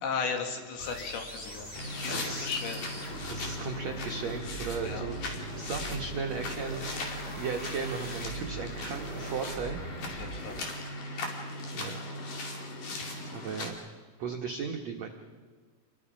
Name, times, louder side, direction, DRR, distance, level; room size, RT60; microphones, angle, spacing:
voice 1, 0.0-2.8 4.8-5.1 10.1-10.6, left 5 dB, 85° left, 3 dB, 4.4 m, -35 dB
sound 1, 0.8-10.6, right 1 dB, 20° left, 2.3 m, -43 dB
sound 2, 1.7-13.7, left 1 dB, 55° left, 4.0 m, -38 dB
voice 2, 2.1-2.5 3.3-6.8 7.4-9.8 11.7-12.0 12.9-13.8 14.2-15.1, right 5 dB, 80° right, 2 dB, 1.5 m, -36 dB
28.0 x 22.0 x 5.1 m, 1.5 s
omnidirectional pair, 5.1 m